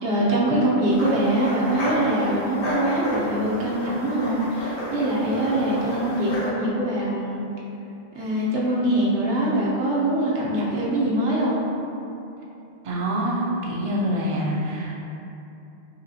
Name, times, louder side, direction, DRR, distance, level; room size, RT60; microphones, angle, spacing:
voice 1, 0.0-7.4 8.1-11.6, right 1 dB, 85° right, -6 dB, 1.1 m, -23 dB
sound 1, 0.9-6.5, equal, 80° left, 1.2 m, -31 dB
voice 2, 12.8-15.0, equal, 45° right, -4 dB, 0.4 m, -26 dB
4.0 x 2.9 x 2.7 m, 2.9 s
omnidirectional pair, 1.1 m